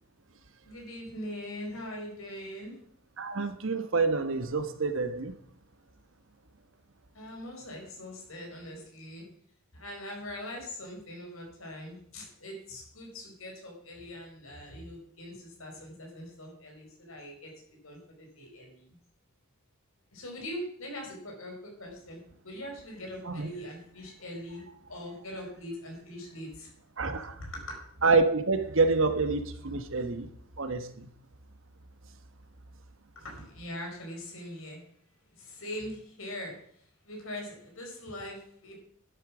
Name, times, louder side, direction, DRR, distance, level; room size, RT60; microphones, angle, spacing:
voice 1, 0.6-2.8 7.1-9.2 9.7-17.5 17.8-18.9 20.1-26.7 27.0-27.8 33.1-34.8 35.3-36.6 37.0-38.7, left 1 dB, 70° left, 4.8 m, -42 dB
voice 2, 3.2-5.3 23.3-23.5 27.0-27.3 28.0-30.3 30.6-31.1, right 3 dB, 60° right, 1.2 m, -27 dB
11.5 x 8.4 x 6.1 m
head